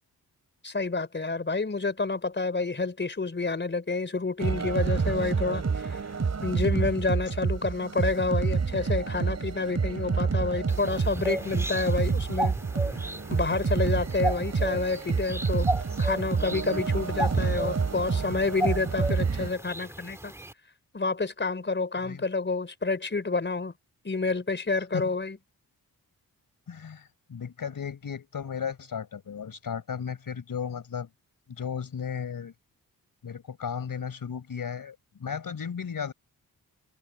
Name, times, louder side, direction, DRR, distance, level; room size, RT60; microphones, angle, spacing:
voice 1, 0.6-6.0 6.4-12.6 13.3-15.7 16.0-20.3 20.9-23.7 24.0-25.4, left 3 dB, 30° left, 4.5 m, -29 dB
sound 1, 4.4-19.5, right 5 dB, 45° right, 3.0 m, -28 dB
sound 2, 10.7-20.5, right 1 dB, 5° right, 1.8 m, -35 dB
voice 2, 26.7-31.1 31.5-32.5 33.2-36.1, left 7 dB, 65° left, 4.6 m, -35 dB
cardioid pair, 75°, 37 cm